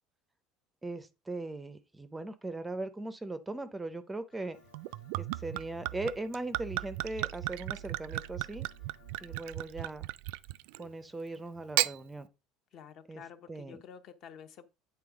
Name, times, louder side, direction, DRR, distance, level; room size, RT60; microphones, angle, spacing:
voice 1, 0.8-4.6 5.2-8.7 9.2-10.1 10.8-12.3 13.1-13.2 13.5-13.8, right 2 dB, 10° right, 0.5 m, -39 dB
sound 1, 4.3-9.5, left 8 dB, 80° left, 1.1 m, -62 dB
Gurgling / Chink clink / Liquid, 4.7-10.9 11.6-12.0, right 19 dB, 75° right, 0.3 m, -35 dB
voice 2, 12.7-14.7, left 7 dB, 40° left, 0.7 m, -50 dB
8.7 x 3.4 x 4.8 m
cardioid pair, 160°, 0 cm